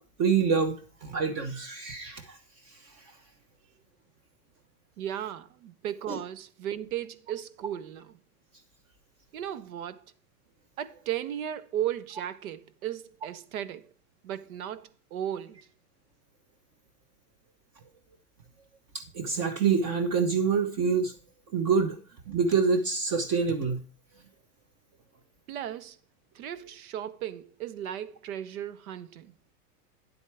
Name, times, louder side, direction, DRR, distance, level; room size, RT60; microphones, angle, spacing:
voice 1, 0.2-0.7 1.0-2.4 6.1-6.2 19.1-21.1 21.5-22.0 22.3-23.8, right 5 dB, 35° right, 1.1 m, -26 dB
voice 2, 5.0-8.2 9.3-10.1 10.8-13.9 14.2-15.6 25.5-26.0 26.3-29.3, right 10 dB, 65° right, 1.1 m, -36 dB
9.7 x 8.2 x 3.4 m
supercardioid pair, 145°, 45 cm